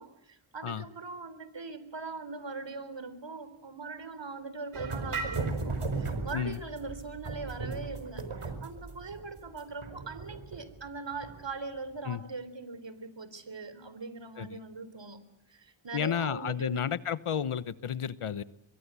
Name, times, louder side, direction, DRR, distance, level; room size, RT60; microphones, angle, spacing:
voice 1, 0.0-16.8, right 3 dB, 60° right, 13 dB, 3.8 m, -41 dB
sound 1, 4.7-11.5, right 3 dB, 80° right, 4.8 m, -36 dB
voice 2, 15.9-18.4, left 8 dB, 85° left, 17 dB, 1.0 m, -32 dB
25.0 x 22.5 x 8.3 m, 0.78 s
cardioid pair, 40°, 49 cm